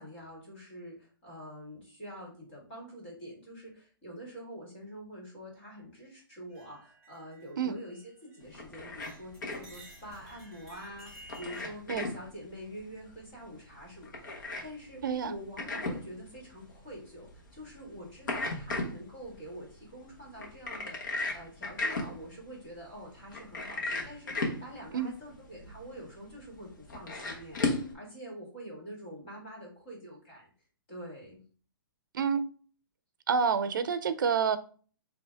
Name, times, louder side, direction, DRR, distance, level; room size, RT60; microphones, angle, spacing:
voice 1, 0.0-30.5 30.9-31.4, equal, 30° left, 2.1 m, -46 dB
sound 1, 6.5-8.6 8.9-11.6, right 1 dB, 5° left, 1.3 m, -54 dB
sound 2, 8.4-27.9, left 3 dB, 55° left, 1.3 m, -38 dB
voice 2, 15.0-15.3 24.9-25.1 32.1-32.4 33.3-34.6, right 6 dB, 55° right, 0.6 m, -28 dB
5.3 x 2.8 x 3.4 m
hypercardioid pair, 180°, 12 cm